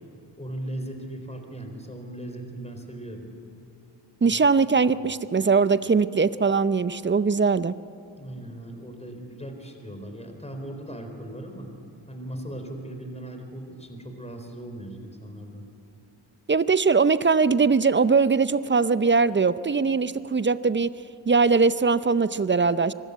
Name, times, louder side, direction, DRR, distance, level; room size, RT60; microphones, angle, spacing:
voice 1, 0.4-3.3 4.2-4.4 8.2-11.7 12.1-15.7, right 1 dB, 15° left, 5 dB, 4.0 m, -38 dB
voice 2, 4.2-7.7 16.5-20.9 21.3-22.9, right 4 dB, 25° right, 15 dB, 0.6 m, -21 dB
24.0 x 13.5 x 8.2 m, 2.5 s
supercardioid pair, 55°, 49 cm